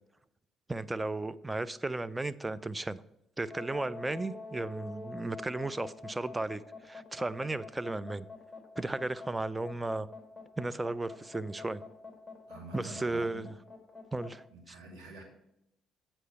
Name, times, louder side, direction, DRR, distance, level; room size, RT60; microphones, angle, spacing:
voice 1, 0.7-3.0 3.4-8.3 8.8-10.1 10.6-11.8 12.7-13.5 14.1-14.7, right 2 dB, 15° right, 14 dB, 0.4 m, -35 dB
sound 1, 3.4-14.3, left 3 dB, 10° left, 1.9 m, -46 dB
voice 2, 12.5-13.5 14.5-15.2, right 2 dB, 65° right, -1 dB, 2.2 m, -47 dB
8.3 x 4.5 x 5.5 m, 0.81 s
figure-of-eight pair, 45°, 0 cm